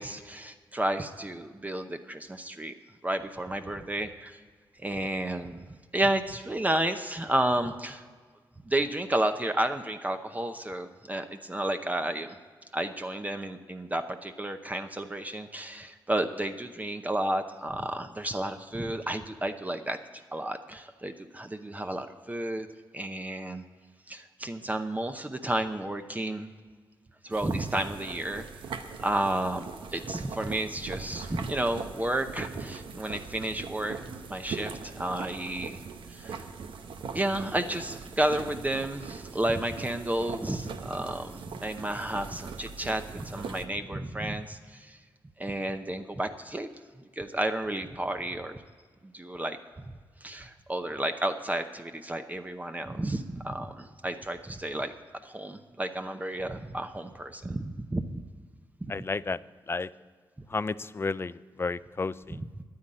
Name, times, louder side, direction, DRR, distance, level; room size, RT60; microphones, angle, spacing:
voice 1, 0.0-2.8 3.0-4.4 4.8-5.6 5.9-8.0 8.7-12.4 12.7-22.7 22.9-23.6 24.1-26.5 27.2-28.4 29.0-29.7 29.9-34.0 34.3-35.8 36.1-36.5 37.1-45.0 45.4-46.7 47.2-48.6 49.0-49.6 50.2-54.9 55.2-58.2 58.8-58.9 62.4-62.6, right 1 dB, 20° right, 7 dB, 0.7 m, -31 dB
sound 1, 27.3-43.7, right 5 dB, 85° right, 0.9 m, -41 dB
voice 2, 58.9-59.4 59.7-59.9 60.5-62.4, left 4 dB, 30° left, 17 dB, 0.4 m, -32 dB
10.5 x 9.6 x 8.7 m, 1.5 s
cardioid pair, 80°, 8 cm